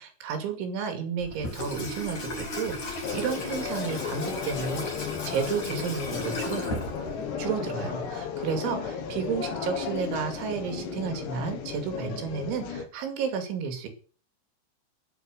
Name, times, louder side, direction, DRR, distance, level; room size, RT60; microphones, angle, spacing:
voice 1, 0.0-6.9 7.4-13.9, right 6 dB, 90° right, 6 dB, 4.9 m, -32 dB
Water tap faucet / Sink (filling or washing), 1.2-7.5, left 2 dB, 40° left, 6.7 m, -36 dB
sound 1, 3.0-12.8, left 6 dB, 70° left, 4.3 m, -34 dB
20.0 x 7.7 x 6.6 m, 0.42 s
omnidirectional pair, 5.2 m